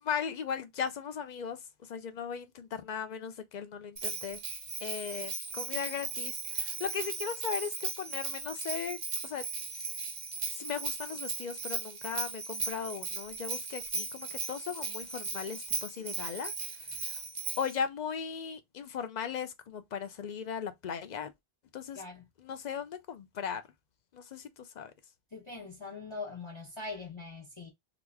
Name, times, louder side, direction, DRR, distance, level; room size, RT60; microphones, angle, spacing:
voice 1, 0.0-4.4 4.8-9.5 10.5-16.5 17.6-21.3 21.7-22.0 22.4-23.6 24.1-24.9, left 7 dB, 50° left, 0.6 m, -37 dB
Bell, 4.0-17.8, right 3 dB, 40° right, 0.6 m, -37 dB
voice 2, 21.9-22.2 25.3-27.7, left 3 dB, 30° left, 0.9 m, -42 dB
3.0 x 2.5 x 3.4 m
omnidirectional pair, 1.0 m